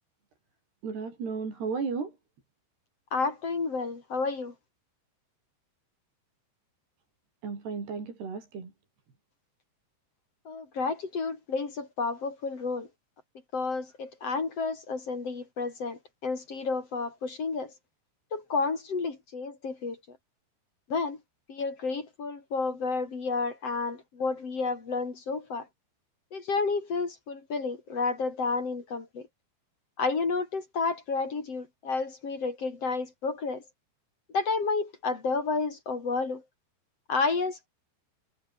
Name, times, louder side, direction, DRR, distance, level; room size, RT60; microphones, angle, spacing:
voice 1, 0.8-2.2 7.4-8.7, right 5 dB, 60° right, 7.9 m, -34 dB
voice 2, 3.1-4.5 10.5-12.9 13.5-17.7 18.3-20.0 20.9-21.2 21.5-25.7 26.3-29.3 30.0-33.6 34.3-36.4 37.1-37.7, left 4 dB, 35° left, 3.7 m, -31 dB
omnidirectional pair, 5.2 m